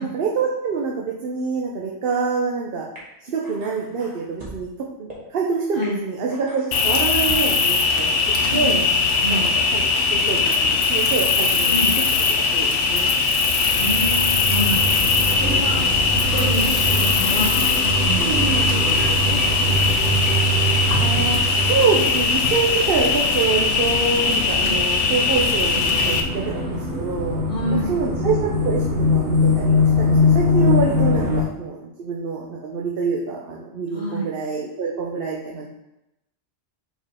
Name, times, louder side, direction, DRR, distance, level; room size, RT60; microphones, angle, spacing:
voice 1, 0.0-2.9 3.2-4.7 5.0-8.1 8.5-8.8 9.3-9.8 10.1-11.7 12.4-13.1 18.2-18.7 21.0-27.4 27.7-28.8 29.1-35.7, right 5 dB, 55° right, -2 dB, 0.9 m, -26 dB
sound 1, 3.0-3.1 3.4-4.6 5.1-5.2 5.8-5.9 6.3-7.6, right 2 dB, 35° right, 1.8 m, -40 dB
Cricket, 6.7-26.2, left 4 dB, 85° left, 1.0 m, -20 dB
voice 2, 8.4-8.8 9.2-9.5 11.6-12.0 13.4-15.8 16.2-17.6 18.0-20.7 24.6-24.9 27.5-28.0 31.1-31.4 33.9-34.3, equal, 50° left, -2 dB, 1.4 m, -29 dB
sound 2, 13.6-31.4, left 1 dB, 70° right, 1.3 m, -23 dB
6.0 x 4.5 x 3.5 m, 0.90 s
omnidirectional pair, 1.2 m